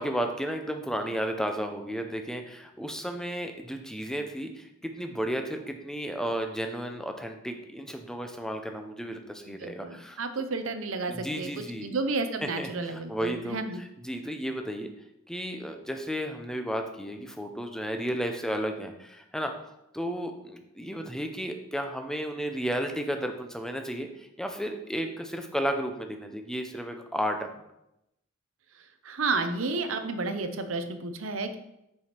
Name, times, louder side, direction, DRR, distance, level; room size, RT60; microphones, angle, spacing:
voice 1, 0.0-10.2 11.1-12.0 12.4-14.9 15.3-19.5 19.9-27.5, equal, 5° left, 5 dB, 0.6 m, -33 dB
voice 2, 9.5-11.5 11.8-13.8 29.0-31.6, right 3 dB, 90° right, 8 dB, 0.7 m, -31 dB
6.9 x 4.9 x 4.4 m, 0.85 s
head